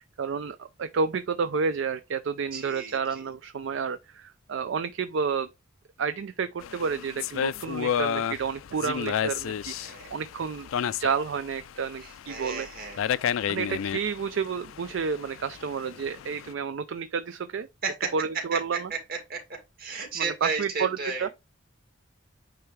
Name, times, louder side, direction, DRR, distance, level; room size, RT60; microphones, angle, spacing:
voice 1, 0.0-5.5 6.0-10.7 11.0-12.7 13.5-17.7 18.1-18.9 20.1-21.3, right 5 dB, 65° right, 0.4 m, -30 dB
voice 2, 2.5-3.0 9.8-10.1 12.0-13.1 17.8-18.1 19.1-19.4 19.8-21.3, right 4 dB, 50° right, 2.3 m, -33 dB
sound 1, 6.6-16.5, left 8 dB, 80° left, 0.3 m, -32 dB
9.0 x 3.4 x 3.2 m
head